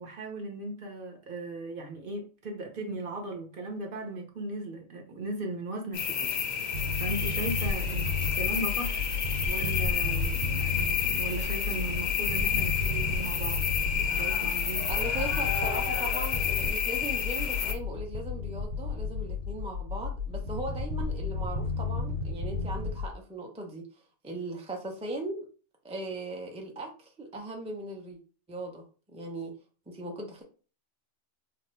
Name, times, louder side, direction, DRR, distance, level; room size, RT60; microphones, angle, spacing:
voice 1, 0.0-6.7 7.0-8.1 8.3-9.0 9.4-13.6 14.1-14.9, right 2 dB, 50° right, 0.9 m, -37 dB
sound 1, 5.9-17.7, left 7 dB, 55° left, 0.5 m, -30 dB
sound 2, 6.7-23.1, left 3 dB, 80° right, 1.0 m, -33 dB
voice 2, 14.9-23.9 24.2-25.4 25.8-28.2 28.5-29.5 29.9-30.4, right 1 dB, 10° right, 0.5 m, -38 dB
2.9 x 2.5 x 4.3 m
omnidirectional pair, 1.2 m